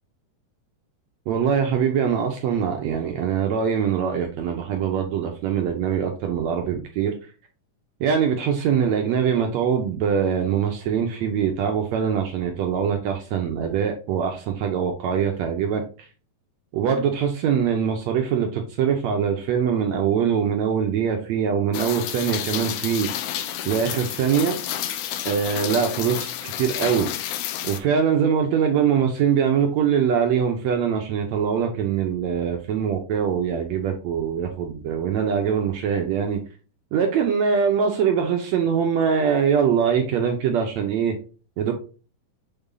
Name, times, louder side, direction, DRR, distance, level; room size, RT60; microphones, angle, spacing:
voice 1, 1.3-7.2 8.0-16.1 16.7-23.1 23.6-24.6 25.2-27.1 27.6-36.4 36.9-41.2 41.6-41.7, right 7 dB, 75° right, 3 dB, 1.7 m, -23 dB
Rain, 21.7-27.8, left 11 dB, 75° left, 1.9 m, -30 dB
6.9 x 4.0 x 3.8 m, 0.35 s
omnidirectional pair, 3.9 m